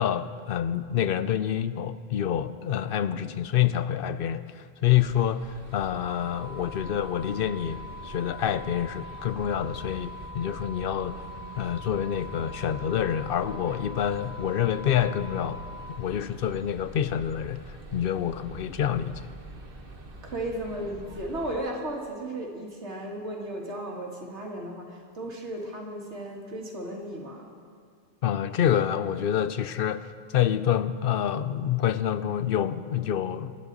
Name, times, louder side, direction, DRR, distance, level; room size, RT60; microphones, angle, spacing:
voice 1, 0.0-11.2 11.6-15.6 16.0-17.6 17.9-19.3 28.2-33.5, left 10 dB, 65° left, 13 dB, 0.7 m, -27 dB
sound 1, 4.9-21.6, right 2 dB, 55° right, 1.5 m, -45 dB
sound 2, 6.0-16.0, left 1 dB, 5° right, 0.6 m, -43 dB
voice 2, 20.2-27.5, right 1 dB, 85° right, 0 dB, 2.2 m, -35 dB
24.0 x 11.0 x 4.0 m, 2.1 s
omnidirectional pair, 1.1 m